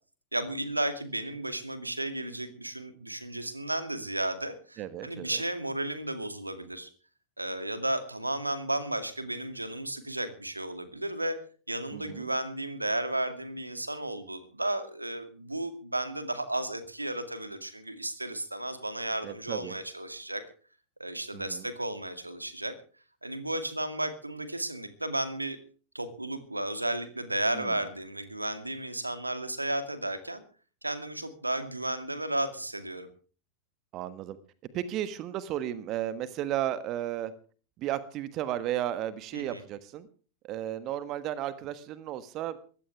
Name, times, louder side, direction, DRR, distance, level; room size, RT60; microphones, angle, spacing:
voice 1, 0.3-6.9 7.4-11.4 11.7-20.4 21.0-22.7 23.2-25.6 25.9-30.4 30.8-33.1 39.3-39.6, right 1 dB, 85° right, 11 dB, 2.3 m, -33 dB
voice 2, 4.8-5.4 11.9-12.3 19.2-19.7 21.3-21.7 27.5-27.8 33.9-34.4 34.7-37.3 37.8-40.1 40.4-42.6, right 12 dB, 35° right, 15 dB, 1.4 m, -34 dB
21.5 x 16.0 x 3.3 m, 0.40 s
figure-of-eight pair, 90°, 0 cm